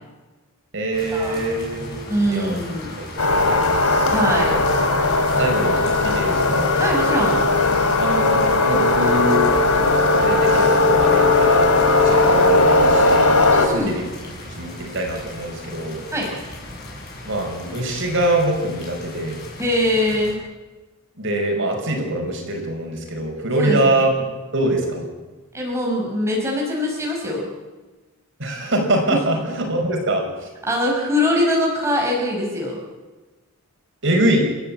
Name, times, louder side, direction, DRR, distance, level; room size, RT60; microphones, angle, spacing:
voice 1, 0.7-2.0 2.3-2.6 3.0-4.2 4.5-4.6 5.4-6.7 8.0-9.4 9.8-16.0 17.3-19.4 21.2-24.1 24.5-25.1 28.4-30.3 34.0-34.4, right 1 dB, 55° right, 2 dB, 5.5 m, -24 dB
sound 1, 0.9-20.3, left 1 dB, 50° left, 7.4 m, -37 dB
voice 2, 2.1-2.9 4.1-4.6 6.7-7.4 13.5-13.9 16.1-16.3 19.6-20.4 23.6-23.8 25.5-27.5 29.1-29.2 30.6-32.8, left 1 dB, 15° right, -2 dB, 5.1 m, -22 dB
sound 2, 3.2-13.7, left 2 dB, 80° left, 2.9 m, -17 dB
30.0 x 14.0 x 8.8 m, 1.2 s
head